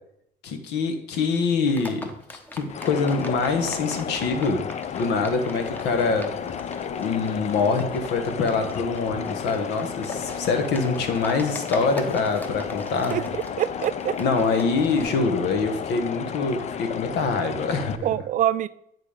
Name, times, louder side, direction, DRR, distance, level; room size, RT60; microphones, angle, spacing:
voice 1, 0.4-4.7 4.9-6.3 7.0-13.2 14.2-18.1, left 4 dB, 85° left, 7 dB, 1.3 m, -25 dB
Livestock farm animals working animals, 1.7-15.0, equal, 10° left, 0.9 m, -41 dB
sound 1, 2.7-18.0, left 7 dB, 40° left, 0.5 m, -33 dB
voice 2, 13.1-14.1 15.1-15.3 18.0-18.7, right 11 dB, 50° right, 15 dB, 0.4 m, -25 dB
9.2 x 4.0 x 5.0 m, 0.73 s
cardioid pair, 110°, 17 cm